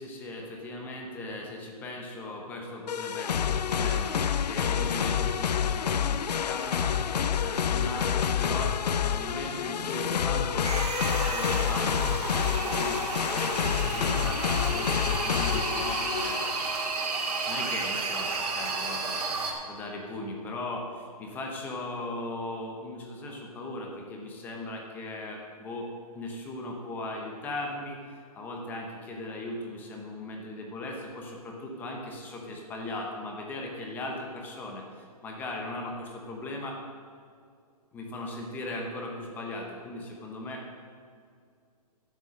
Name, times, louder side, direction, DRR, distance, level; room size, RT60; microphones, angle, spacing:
voice 1, 0.0-6.9 7.4-8.7 9.0-10.7 11.1-16.4 17.4-25.9 26.1-28.0 28.3-34.8 35.2-36.8 37.9-40.6, left 2 dB, 10° left, 1 dB, 0.9 m, -38 dB
sound 1, 2.9-16.6, left 8 dB, 90° left, 0.5 m, -28 dB
sound 2, 10.6-19.5, right 3 dB, 70° right, 2.3 m, -32 dB
10.5 x 7.1 x 6.3 m, 2.2 s
hypercardioid pair, 165°, 20 cm